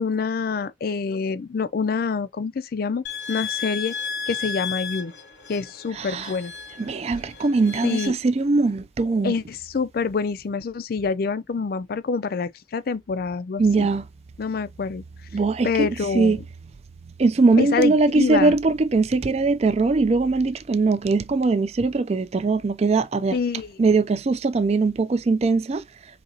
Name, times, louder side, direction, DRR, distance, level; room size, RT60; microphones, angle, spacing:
voice 1, 0.0-3.9 4.3-5.1 5.5-6.5 7.8-8.1 9.2-13.9 14.4-15.0 15.6-16.4 17.6-18.6 23.3-23.7, left 5 dB, 50° left, 0.4 m, -26 dB
sound 1, 3.0-8.1, left 6 dB, 70° left, 0.8 m, -34 dB
voice 2, 5.9-6.3 6.8-9.3 13.6-14.0 15.3-16.4 17.2-23.4 23.8-25.8, right 3 dB, 35° right, 0.4 m, -21 dB
3.9 x 2.9 x 2.7 m
head